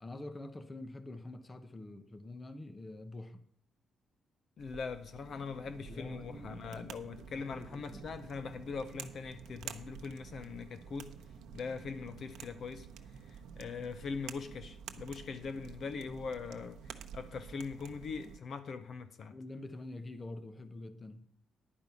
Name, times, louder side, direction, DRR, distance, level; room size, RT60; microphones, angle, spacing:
voice 1, 0.0-3.4 5.8-6.9 7.1-8.0 19.3-21.3, left 2 dB, 20° left, 0.8 m, -46 dB
voice 2, 4.6-11.1 11.5-12.9 13.2-19.4, left 5 dB, 45° left, 0.6 m, -41 dB
sound 1, 4.6-18.4, right 7 dB, 80° right, 0.8 m, -49 dB
10.5 x 5.3 x 8.1 m
cardioid pair, 145°, 0 cm